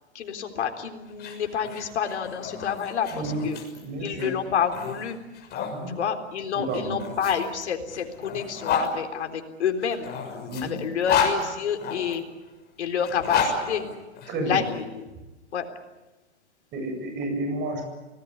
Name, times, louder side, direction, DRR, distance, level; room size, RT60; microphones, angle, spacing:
voice 1, 0.1-3.6 4.0-5.2 5.9-12.3 12.8-13.9 14.4-15.1 15.5-15.7, left 7 dB, 80° left, 5 dB, 3.9 m, -29 dB
sound 1, 1.1-5.7 6.7-8.9 9.8-12.2 13.0-14.6, left 6 dB, 30° left, 6.3 m, -30 dB
voice 2, 3.1-3.4 3.8-4.3 5.7-5.9 6.5-7.0 10.5-10.8 14.3-14.6 16.7-17.8, right 2 dB, 30° right, 4 dB, 7.8 m, -30 dB
25.0 x 19.0 x 9.7 m, 1.1 s
hypercardioid pair, 130°, 34 cm